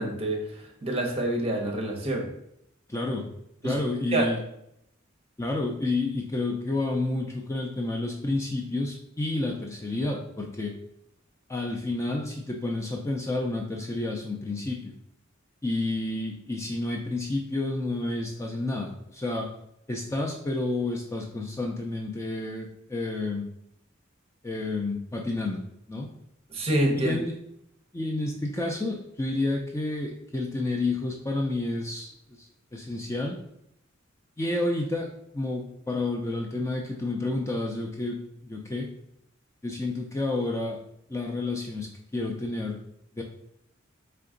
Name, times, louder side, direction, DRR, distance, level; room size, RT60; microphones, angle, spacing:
voice 1, 0.0-2.3 3.6-3.8 4.1-4.3 26.5-27.2, right 1 dB, 30° right, 1 dB, 0.8 m, -27 dB
voice 2, 2.9-3.3 3.6-4.4 5.4-10.8 11.5-14.9 15.6-19.5 19.9-23.5 24.4-25.6 25.9-26.1 27.0-27.3 27.9-33.4 34.4-38.9 39.6-40.8 41.1-42.8 43.1-43.2, left 2 dB, 15° left, 0 dB, 0.4 m, -30 dB
3.8 x 3.3 x 3.8 m, 0.75 s
head